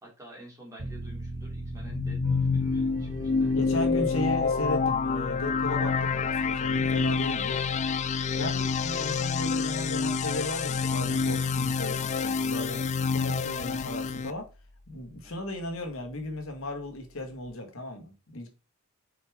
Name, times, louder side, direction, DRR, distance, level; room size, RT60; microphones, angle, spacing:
voice 1, 0.0-3.9 15.2-15.4, right 1 dB, 15° right, 2.9 m, -50 dB
Piano, 0.8-17.5, right 1 dB, 60° right, 1.4 m, -44 dB
sound 1, 1.8-14.3, left 5 dB, 30° left, 0.3 m, -28 dB
sound 2, 2.2-9.3 9.9-12.4, equal, 90° right, 1.8 m, -53 dB
voice 2, 3.5-7.6 8.4-14.5 14.9-18.5, left 1 dB, 60° left, 1.7 m, -35 dB
6.7 x 5.0 x 3.6 m
head